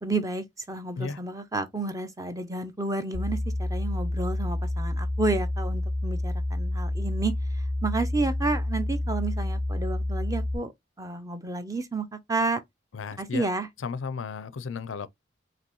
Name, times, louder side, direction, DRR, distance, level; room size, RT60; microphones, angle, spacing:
voice 1, 0.0-7.3 7.8-10.7 11.0-12.6 13.2-13.7, right 3 dB, 15° right, 0.6 m, -30 dB
sound 1, 3.1-10.6, left 1 dB, 75° right, 2.3 m, -29 dB
voice 2, 12.9-13.5 13.8-15.1, left 5 dB, 90° left, 0.5 m, -34 dB
5.1 x 2.9 x 3.0 m
head